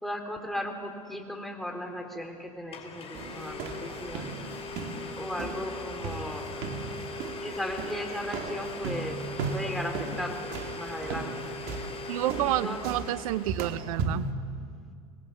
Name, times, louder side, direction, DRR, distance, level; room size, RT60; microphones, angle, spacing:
voice 1, 0.0-4.3 5.2-6.5 7.4-9.2 9.5-11.4 12.4-13.0, equal, ahead, 3 dB, 3.7 m, -36 dB
Domestic sounds home sounds, 2.2-2.3 2.7-13.8, left 3 dB, 35° left, 4.1 m, -39 dB
sound 1, 3.1-14.3, right 4 dB, 55° right, 2.3 m, -37 dB
voice 2, 12.1-14.3, right 14 dB, 75° right, 16 dB, 0.6 m, -29 dB
23.5 x 20.5 x 7.3 m, 2.2 s
hypercardioid pair, 95°, 18 cm